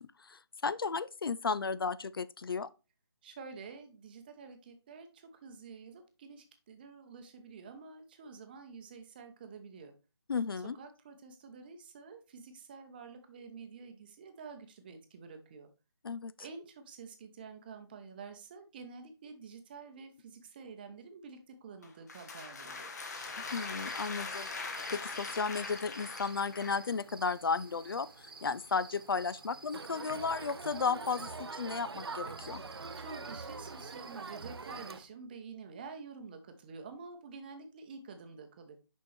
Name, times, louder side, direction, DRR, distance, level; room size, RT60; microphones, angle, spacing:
voice 1, 0.0-2.7 10.3-10.8 16.0-16.3 23.5-24.5 24.9-32.6, left 5 dB, 60° left, 0.4 m, -34 dB
voice 2, 3.2-9.9 10.8-15.7 16.4-22.9 33.0-38.8, right 5 dB, 20° right, 0.8 m, -49 dB
sound 1, 21.8-26.9, left 4 dB, 40° left, 1.2 m, -41 dB
sound 2, 23.2-35.1, right 3 dB, 60° right, 1.2 m, -52 dB
Crowd, 29.7-35.0, right 4 dB, 75° right, 0.5 m, -43 dB
6.6 x 5.4 x 3.3 m
figure-of-eight pair, 155°, 14 cm